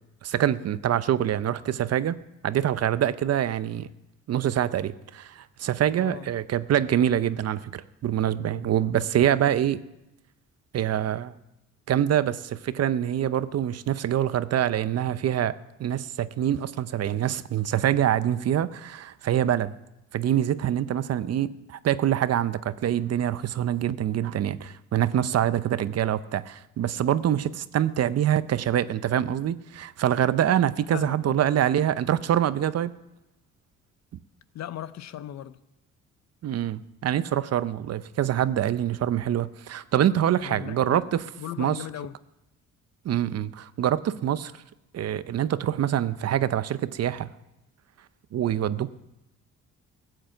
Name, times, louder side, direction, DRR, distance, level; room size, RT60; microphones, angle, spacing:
voice 1, 0.2-2.2 2.4-3.9 4.3-9.8 10.7-11.3 11.9-15.5 15.8-19.7 20.1-32.9 36.4-41.2 41.6-41.8 43.0-44.5 44.9-47.3 48.3-48.9, right 10 dB, 55° right, 0.7 m, -25 dB
voice 2, 6.0-6.3 30.9-31.4 34.5-35.6 40.4-41.1 41.4-42.2, left 11 dB, 60° left, 0.7 m, -37 dB
15.0 x 8.0 x 7.8 m
cardioid pair, 90°, 30 cm